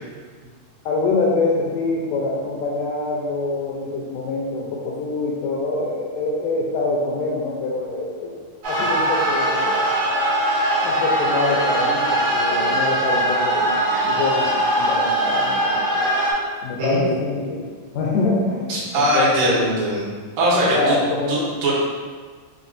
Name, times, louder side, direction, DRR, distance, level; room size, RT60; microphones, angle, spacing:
voice 1, 0.9-8.3 8.7-9.9 10.8-16.1 16.6-19.7 20.7-21.5, left 3 dB, 80° left, -2 dB, 1.9 m, -25 dB
sound 1, 8.6-16.3, right 1 dB, 60° right, 1.2 m, -21 dB
voice 2, 18.7-20.1 20.4-21.0 21.3-21.7, right 1 dB, 80° right, -7 dB, 2.6 m, -20 dB
5.9 x 2.3 x 2.6 m, 1.5 s
omnidirectional pair, 4.0 m